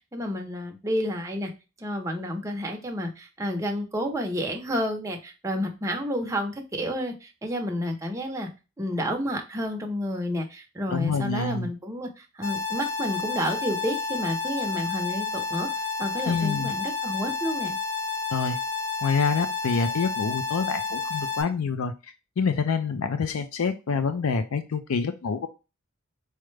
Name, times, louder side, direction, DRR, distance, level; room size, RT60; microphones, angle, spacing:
voice 1, 0.1-1.5 1.8-8.5 8.8-17.8, equal, 15° right, 2 dB, 0.7 m, -30 dB
voice 2, 10.9-11.7 16.2-16.7 18.3-18.6 19.0-25.5, left 5 dB, 90° left, 10 dB, 0.5 m, -27 dB
sound 1, 12.4-21.4, left 4 dB, 50° left, 1.0 m, -30 dB
4.8 x 2.1 x 3.2 m, 0.28 s
head